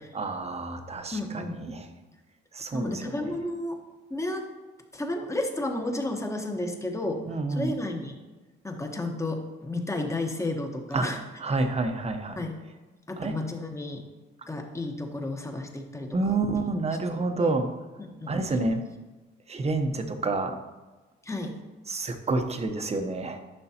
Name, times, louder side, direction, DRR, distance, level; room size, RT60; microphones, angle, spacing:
voice 1, 0.1-1.9 2.5-3.3 7.3-7.7 10.9-11.0 11.4-12.4 13.2-13.3 16.1-17.7 18.3-18.8 19.5-20.6 21.9-23.4, right 3 dB, 30° right, 6 dB, 1.0 m, -28 dB
voice 2, 1.1-1.6 2.7-3.8 4.1-4.5 4.9-7.2 7.5-8.2 8.6-11.2 12.4-12.6 13.1-14.0 14.5-16.4 17.1-17.5 18.0-18.3 21.2-21.5, left 2 dB, 15° left, 4 dB, 1.2 m, -32 dB
11.0 x 6.1 x 2.9 m, 1.2 s
cardioid pair, 90°, 20 cm